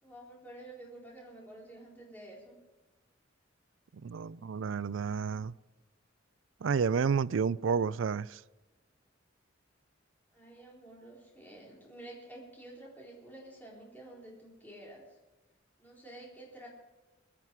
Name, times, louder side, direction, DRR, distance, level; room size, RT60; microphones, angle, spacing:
voice 1, 0.0-2.6 10.3-15.2 15.8-16.7, right 1 dB, 10° left, 4.0 m, -50 dB
voice 2, 4.0-5.5 6.6-8.4, right 6 dB, 70° right, 0.4 m, -30 dB
22.5 x 11.5 x 4.7 m
head